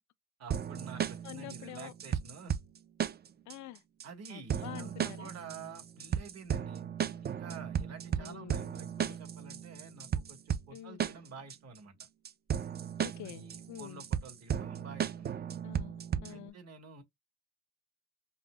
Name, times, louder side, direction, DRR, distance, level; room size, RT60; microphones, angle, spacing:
voice 1, 0.4-2.6 4.0-6.9 7.2-11.9 13.2-15.3 16.3-17.0, right 4 dB, 60° right, 1.4 m, -49 dB
sound 1, 0.5-16.5, right 8 dB, 35° right, 0.4 m, -35 dB
voice 2, 1.2-1.9 3.5-3.8 4.3-5.3 8.2-9.2 10.7-11.0 13.0-14.0 15.6-16.6, left 14 dB, 70° left, 0.5 m, -47 dB
5.3 x 2.0 x 2.2 m
cardioid pair, 90°, 30 cm